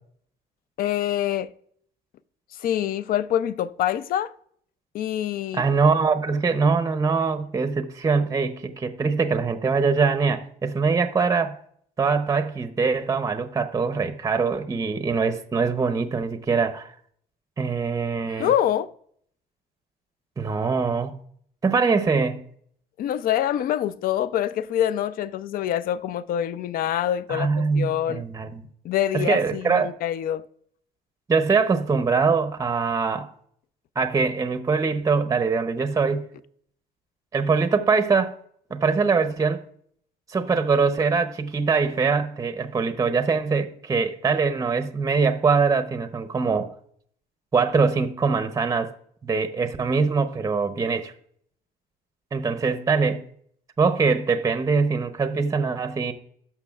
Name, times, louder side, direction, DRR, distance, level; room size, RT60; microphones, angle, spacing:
voice 1, 0.8-1.5 2.6-4.3 4.9-5.6 18.2-18.9 23.0-28.2 28.8-30.5, left 11 dB, 60° left, 0.4 m, -25 dB
voice 2, 5.5-11.6 12.0-16.9 17.6-18.5 20.4-21.1 21.6-22.4 27.3-28.7 29.1-29.9 31.3-33.3 34.0-36.3 37.3-38.3 38.7-39.6 40.3-46.7 47.5-48.9 49.2-51.1 52.3-53.2 53.8-56.1, right 5 dB, 20° right, 0.6 m, -23 dB
13.0 x 5.7 x 2.3 m
cardioid pair, 110°, 17 cm